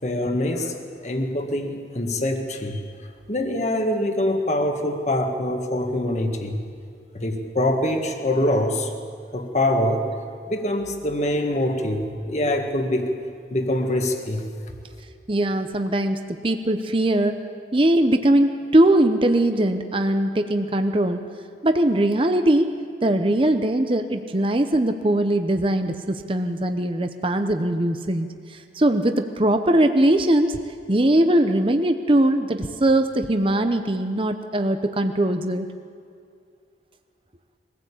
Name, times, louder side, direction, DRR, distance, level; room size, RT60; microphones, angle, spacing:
voice 1, 0.0-2.8 3.3-6.6 7.1-8.9 9.3-10.1 10.5-13.1 13.5-14.5, left 1 dB, 40° left, 4 dB, 1.8 m, -24 dB
voice 2, 15.3-17.4 17.7-21.2 21.6-30.6 30.9-35.7, right 1 dB, 30° right, 7 dB, 0.8 m, -21 dB
22.5 x 16.0 x 8.5 m, 2.2 s
head